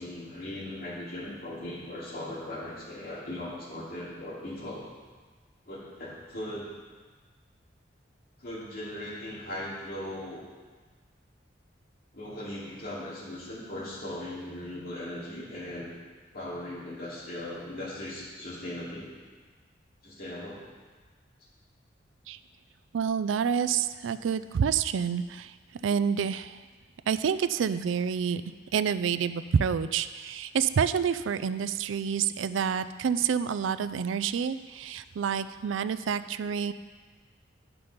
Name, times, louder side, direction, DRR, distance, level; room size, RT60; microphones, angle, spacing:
voice 1, 0.0-4.8 5.7-6.6 8.4-10.4 12.1-15.9 16.3-19.1 20.0-20.6, left 1 dB, 50° left, -7 dB, 2.8 m, -38 dB
voice 2, 22.9-25.5 25.8-26.6 27.1-28.4 28.7-36.7, right 7 dB, 85° right, 13 dB, 0.4 m, -28 dB
10.5 x 6.1 x 5.1 m, 1.4 s
head